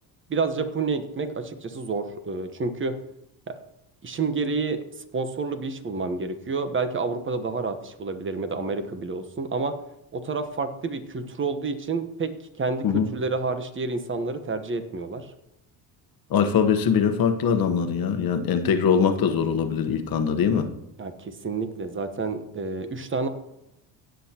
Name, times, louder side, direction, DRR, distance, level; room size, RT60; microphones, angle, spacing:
voice 1, 0.3-2.9 3.5-3.6 4.0-4.8 5.1-9.7 10.1-15.3 21.0-23.3, right 4 dB, 25° right, 9 dB, 1.1 m, -29 dB
voice 2, 16.3-20.7, left 7 dB, 45° left, 7 dB, 1.2 m, -22 dB
17.0 x 8.2 x 2.9 m, 0.85 s
cardioid pair, 105°, 47 cm